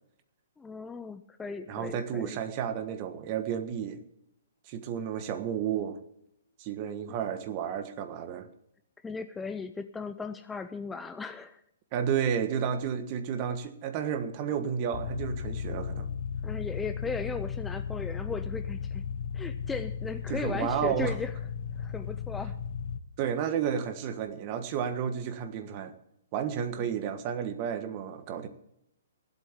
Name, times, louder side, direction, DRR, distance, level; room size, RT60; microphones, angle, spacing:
voice 1, 0.6-2.4 9.0-11.6 16.4-19.0 19.3-21.3 21.8-22.6 26.8-26.9, left 4 dB, 10° left, 0.5 m, -37 dB
voice 2, 1.7-4.0 4.7-6.0 6.6-8.5 11.9-16.1 20.3-21.2 23.2-25.9 26.3-28.5, right 8 dB, 35° right, 1.4 m, -31 dB
sound 1, 14.9-23.0, left 7 dB, 50° left, 1.1 m, -35 dB
16.0 x 8.2 x 7.5 m
hypercardioid pair, 155°, 0 cm